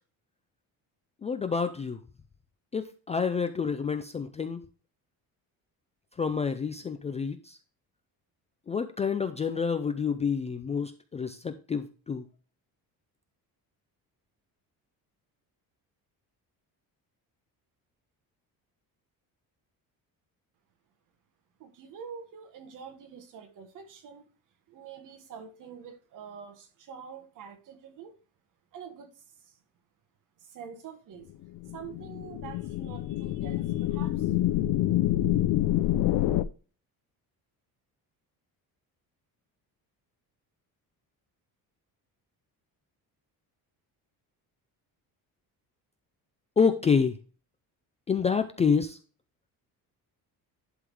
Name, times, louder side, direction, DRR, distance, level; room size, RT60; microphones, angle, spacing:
voice 1, 1.2-2.0 2.7-4.6 6.2-7.6 8.7-12.3 46.6-47.2 48.1-49.0, left 6 dB, 20° left, 0.3 m, -28 dB
voice 2, 21.6-24.3 24.7-28.1 28.7-29.6 30.4-31.3 31.7-34.6, right 7 dB, 55° right, 1.6 m, -46 dB
sound 1, 31.5-36.4, left 14 dB, 65° left, 0.6 m, -27 dB
11.0 x 3.7 x 4.7 m
cardioid pair, 180°, 37 cm